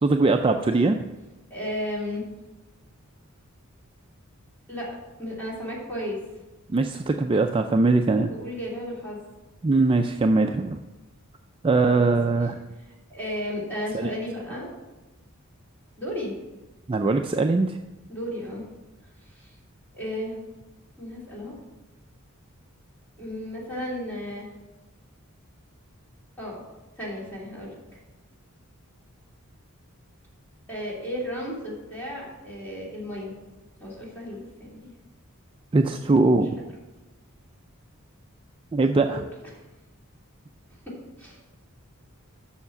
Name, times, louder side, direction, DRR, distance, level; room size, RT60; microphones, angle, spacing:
voice 1, 0.0-1.0 6.7-8.3 9.6-10.8 11.6-12.6 13.9-14.1 16.9-17.8 35.7-36.6 38.7-39.2, right 3 dB, 25° right, 5 dB, 0.3 m, -21 dB
voice 2, 1.5-2.3 4.7-4.9 5.2-6.2 8.2-9.3 11.8-12.1 13.1-14.7 16.0-16.3 18.1-18.6 19.3-19.5 19.9-20.4 21.0-21.5 23.2-24.5 26.4-26.6 27.0-28.0 30.7-33.3 33.8-34.9 39.1-39.3 41.2-41.4, equal, 10° left, -6 dB, 3.2 m, -34 dB
7.2 x 6.5 x 6.9 m, 1.1 s
head